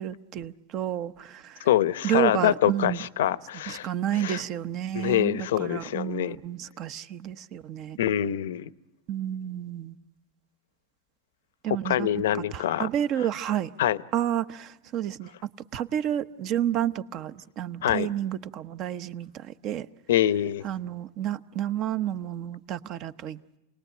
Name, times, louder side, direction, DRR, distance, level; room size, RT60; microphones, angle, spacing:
voice 1, 0.0-1.7 2.0-3.0 3.7-8.0 9.1-10.0 11.6-12.1 12.3-13.7 14.1-19.9 20.6-23.4, right 11 dB, 40° right, 0.9 m, -30 dB
voice 2, 1.6-3.9 4.1-4.4 4.9-6.4 8.0-8.7 11.7-12.9 13.8-14.0 17.8-18.1 20.1-20.7, left 12 dB, 80° left, 0.8 m, -25 dB
28.5 x 19.0 x 9.2 m
supercardioid pair, 135°, 0 cm